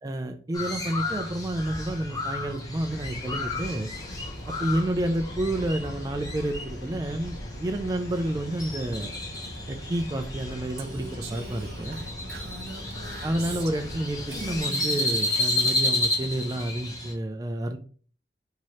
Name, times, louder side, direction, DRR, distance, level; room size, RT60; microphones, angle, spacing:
voice 1, 0.0-3.9 4.5-9.1 9.7-12.0 13.2-17.8, right 1 dB, 20° right, 6 dB, 0.3 m, -30 dB
Crow, 0.5-17.1, left 2 dB, 20° left, 0.7 m, -32 dB
sound 1, 2.7-14.6, equal, 75° left, 0.8 m, -41 dB
Female speech woman speaking, 10.8-14.0 14.3-15.8, right 3 dB, 60° right, 0.8 m, -41 dB
4.6 x 2.8 x 3.0 m, 0.42 s
head